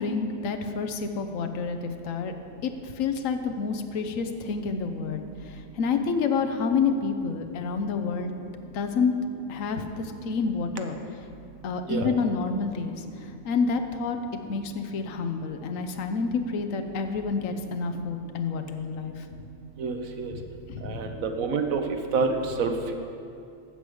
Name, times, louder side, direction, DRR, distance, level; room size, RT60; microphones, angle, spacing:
voice 1, 0.0-2.3 2.6-8.3 8.7-9.1 9.5-11.0 11.6-14.2 14.5-19.3 20.3-21.0, left 5 dB, 75° left, 6 dB, 1.1 m, -29 dB
voice 2, 19.8-20.3 20.8-22.9, right 4 dB, 85° right, 5 dB, 1.3 m, -28 dB
13.5 x 4.9 x 7.8 m, 2.5 s
omnidirectional pair, 1.4 m